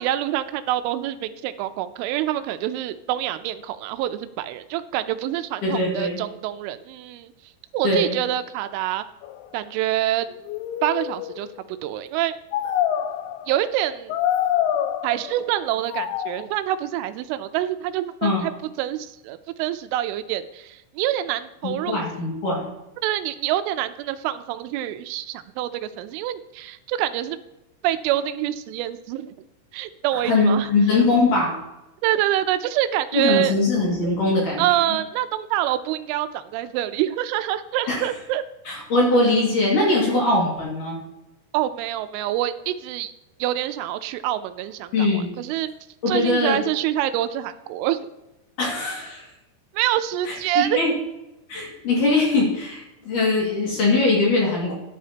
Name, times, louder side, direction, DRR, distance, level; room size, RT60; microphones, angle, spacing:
voice 1, 0.0-7.3 7.7-9.0 9.5-10.3 10.8-12.4 13.5-14.2 15.0-18.5 18.8-22.0 23.0-27.4 27.8-29.4 29.7-31.0 32.0-33.5 34.6-38.4 41.5-43.1 43.4-45.7 46.1-48.1 49.7-50.8, right 13 dB, 85° right, 11 dB, 3.1 m, -26 dB
voice 2, 5.6-6.2 7.8-8.2 18.2-18.5 21.6-22.7 30.2-31.6 33.1-35.0 37.9-38.0 38.7-41.0 44.9-45.3 46.0-46.6 48.6-49.3 50.3-50.9 51.5-54.7, left 2 dB, 50° left, -3 dB, 3.1 m, -21 dB
sound 1, 9.2-9.4 10.3-11.6 12.5-13.6 14.1-15.5 15.9-16.5, left 10 dB, 85° left, 2.5 m, -26 dB
13.5 x 10.5 x 2.9 m, 0.95 s
omnidirectional pair, 5.6 m